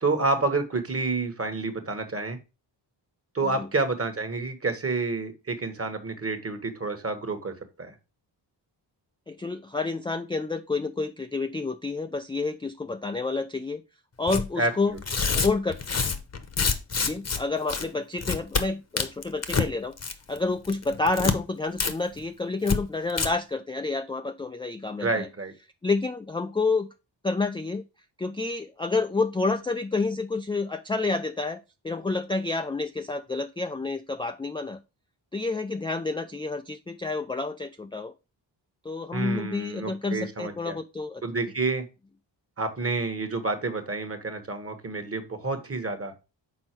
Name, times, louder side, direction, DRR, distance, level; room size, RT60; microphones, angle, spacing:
voice 1, 0.0-2.4 3.3-7.9 14.6-15.0 25.0-25.5 39.1-40.8 41.2-41.9 42.6-46.1, right 3 dB, 30° right, 8 dB, 1.3 m, -29 dB
voice 2, 9.3-13.8 14.2-15.0 15.3-15.8 17.0-20.0 20.3-25.3 25.8-26.9 27.2-27.8 28.2-34.8 35.3-38.1 38.8-41.2, left 3 dB, 10° left, 8 dB, 0.3 m, -29 dB
Tearing, 14.3-14.5 15.0-17.4 17.7-17.9 18.2-18.6 19.0-19.7 20.0-20.4 20.7-21.4 21.8-21.9 22.2-22.3 22.7-22.8 23.1-23.3, left 5 dB, 35° left, 0.9 m, -26 dB
6.2 x 4.3 x 4.4 m, 0.28 s
cardioid pair, 80°, 45 cm